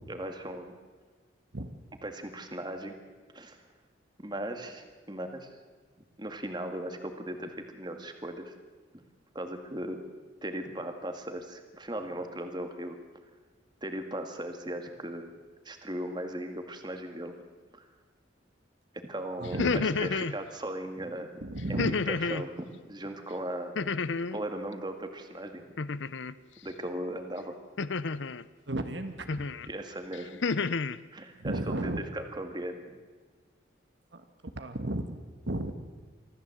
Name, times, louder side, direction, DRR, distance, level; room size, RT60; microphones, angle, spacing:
voice 1, 0.1-0.7 2.0-3.0 3.3-3.6 4.2-5.5 6.2-8.6 8.9-9.0 9.3-10.0 10.4-13.0 13.8-15.3 15.7-17.4 17.7-17.8 18.9-21.4 21.7-23.8 24.3-25.6 26.6-27.6 29.7-30.4 31.1-32.8, right 1 dB, 25° right, 6 dB, 1.9 m, -38 dB
sound 1, 19.4-20.4 21.8-22.5 23.8-24.4 25.8-26.3 27.8-28.4 29.3-29.7 30.1-31.0, left 4 dB, 70° left, 0.7 m, -30 dB
voice 2, 19.4-19.9 21.4-21.9 28.7-29.5 31.4-32.0 34.1-34.2 34.5-35.2 35.5-35.7, right 1 dB, 65° right, 7 dB, 1.6 m, -33 dB
24.5 x 15.0 x 7.9 m, 1.4 s
head